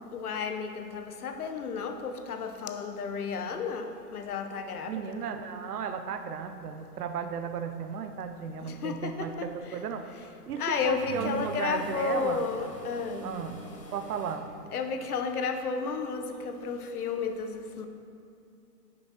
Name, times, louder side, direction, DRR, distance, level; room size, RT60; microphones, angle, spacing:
voice 1, 0.1-5.3 8.6-9.7 10.6-13.2 14.7-17.9, left 5 dB, 60° left, 6 dB, 0.9 m, -32 dB
voice 2, 4.9-9.3 9.7-10.1 10.5-12.4 13.2-13.6 13.9-14.5, right 7 dB, 65° right, 7 dB, 0.7 m, -35 dB
sound 1, 7.9-8.2 8.7-10.0 10.4-14.3, equal, 20° left, 0.5 m, -43 dB
11.0 x 6.4 x 2.9 m, 2.4 s
hypercardioid pair, 150°, 50 cm